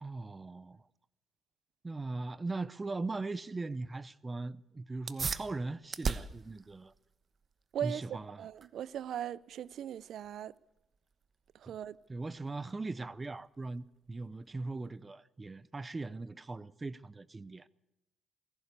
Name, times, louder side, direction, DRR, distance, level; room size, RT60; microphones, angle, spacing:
voice 1, 0.0-0.8 1.8-6.9 7.8-8.5 11.7-11.8 12.1-17.7, right 3 dB, 25° right, 0.8 m, -39 dB
sound 1, 4.9-15.0, right 5 dB, 45° right, 1.2 m, -43 dB
voice 2, 7.7-10.5 11.5-12.0, right 10 dB, 70° right, 0.6 m, -39 dB
24.0 x 16.5 x 6.8 m
cardioid pair, 90°, 0 cm